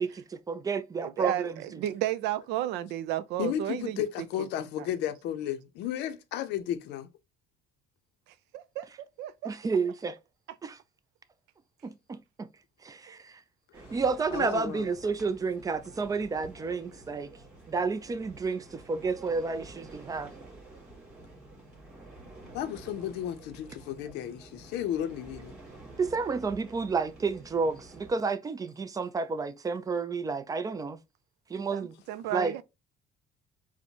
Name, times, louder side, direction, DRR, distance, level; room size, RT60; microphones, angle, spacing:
voice 1, 0.0-1.8 9.4-10.2 10.6-10.8 11.8-12.5 12.8-13.4 13.8-17.3 17.7-20.4 26.0-31.0 31.5-32.0 32.3-32.5, right 4 dB, 20° right, 0.4 m, -31 dB
voice 2, 1.0-1.5 1.8-4.0 4.4-4.5 8.5-8.9 9.2-9.5 13.1-13.2 31.7-32.6, right 13 dB, 90° right, 0.4 m, -32 dB
voice 3, 3.4-7.1 14.3-14.8 22.5-25.5, left 10 dB, 85° left, 0.5 m, -33 dB
sound 1, 13.7-28.1, right 2 dB, 5° right, 2.1 m, -50 dB
4.3 x 2.1 x 2.8 m
cardioid pair, 110°, 17 cm